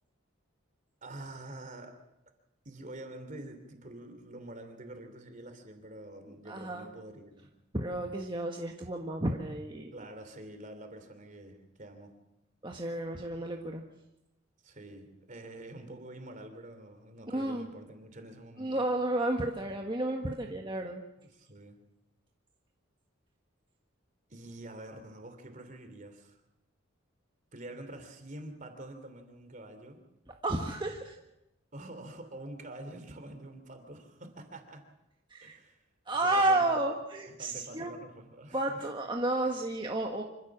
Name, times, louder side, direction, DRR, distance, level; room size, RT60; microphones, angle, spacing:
voice 1, 1.0-1.9 2.6-7.5 9.9-12.2 14.6-18.8 21.2-21.8 24.3-26.4 27.5-30.0 31.7-34.8 35.4-35.8 36.2-37.0 37.3-38.9, right 1 dB, 35° right, 7 dB, 3.2 m, -46 dB
voice 2, 6.4-6.9 7.7-9.9 12.6-13.8 17.3-17.7 18.6-21.0 30.4-31.1 35.3-35.5 36.1-38.0 38.5-40.2, right 2 dB, 20° right, 1 dB, 1.5 m, -31 dB
26.0 x 15.0 x 7.3 m, 0.92 s
head